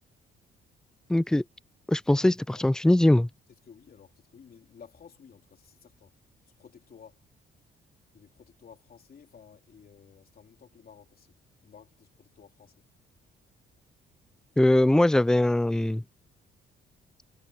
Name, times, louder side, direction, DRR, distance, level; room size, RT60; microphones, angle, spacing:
voice 1, 1.1-1.4 1.9-3.3 14.6-16.0, left 1 dB, 5° left, 0.3 m, -21 dB
voice 2, 3.6-6.1 6.6-7.2 8.1-11.3 11.6-12.8, left 7 dB, 50° left, 3.4 m, -54 dB
cardioid pair, 90°, 20 cm